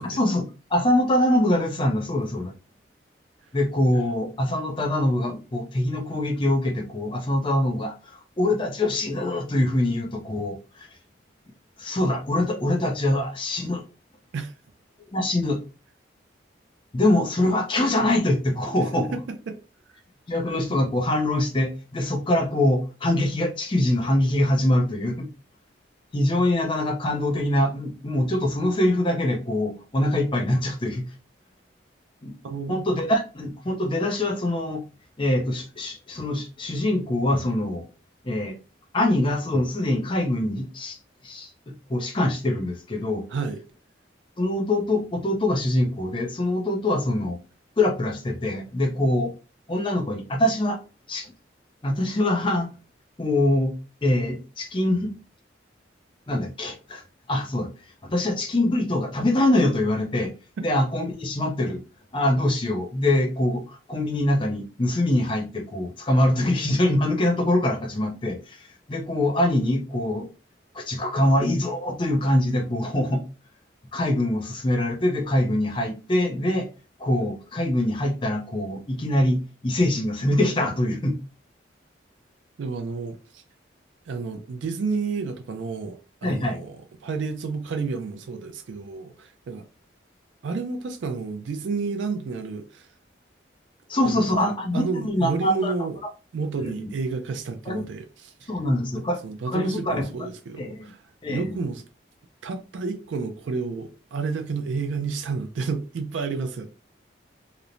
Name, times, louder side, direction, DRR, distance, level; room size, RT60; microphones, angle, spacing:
voice 1, 0.1-2.5 3.5-11.0 11.8-13.8 15.1-15.6 16.9-19.1 20.3-25.3 26.1-31.1 32.2-32.3 32.7-34.8 35.2-37.8 38.2-38.6 38.9-41.0 41.2-43.3 44.4-47.4 47.8-49.3 49.7-50.8 51.1-51.3 51.8-52.7 53.2-53.7 54.0-55.2 56.3-57.0 57.3-60.3 60.6-61.8 62.1-70.3 70.7-73.2 73.9-76.7 77.0-81.2 86.2-86.6 93.9-95.7 96.6-96.9 97.7-97.8 98.5-99.2 99.5-100.0 100.6-100.9 101.2-101.5, left 1 dB, 25° left, 0.5 m, -24 dB
voice 2, 32.4-32.8 43.3-43.6 82.6-83.4 84.1-86.8 87.0-89.6 90.4-92.9 94.0-94.2 94.7-96.0 96.3-98.5 99.2-101.8 102.4-106.7, right 4 dB, 80° right, 0.3 m, -30 dB
2.9 x 2.0 x 2.5 m
head